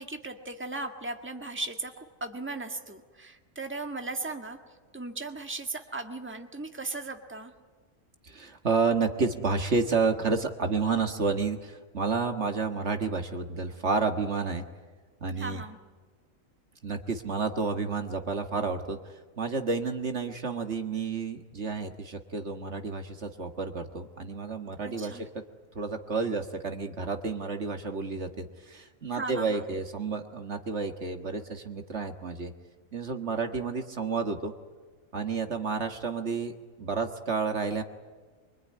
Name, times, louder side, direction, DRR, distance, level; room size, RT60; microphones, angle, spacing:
voice 1, 0.0-7.5 15.4-15.8 24.8-25.3 29.1-29.6, right 3 dB, 10° right, 5 dB, 1.7 m, -37 dB
voice 2, 8.2-14.7 15.2-15.6 16.8-25.3 25.8-32.5 32.9-34.5 35.1-37.8, right 4 dB, 60° right, 6 dB, 1.9 m, -30 dB
24.5 x 24.0 x 9.6 m, 1.4 s
omnidirectional pair, 1.4 m